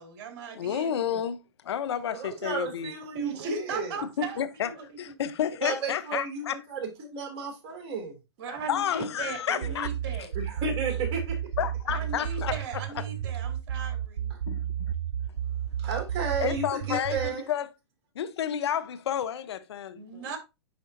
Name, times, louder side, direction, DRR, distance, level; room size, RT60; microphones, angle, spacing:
voice 1, 0.0-1.2 3.1-5.0 8.4-10.3 11.9-14.3 19.9-20.4, right 4 dB, 50° right, 2.2 m, -37 dB
voice 2, 0.5-1.4 1.6-2.9 4.2-4.7 5.0-6.5 8.7-9.9 11.6-12.5 14.5-14.9 16.4-17.7 18.2-20.2, left 9 dB, 75° left, 0.8 m, -30 dB
voice 3, 2.1-4.0 5.6-8.2 9.5-9.7 10.3-11.5 14.3-14.4 15.8-17.4, right 4 dB, 35° right, 2.8 m, -33 dB
sound 1, 9.6-17.3, right 10 dB, 80° right, 0.4 m, -32 dB
10.5 x 3.7 x 2.7 m
hypercardioid pair, 125°, 14 cm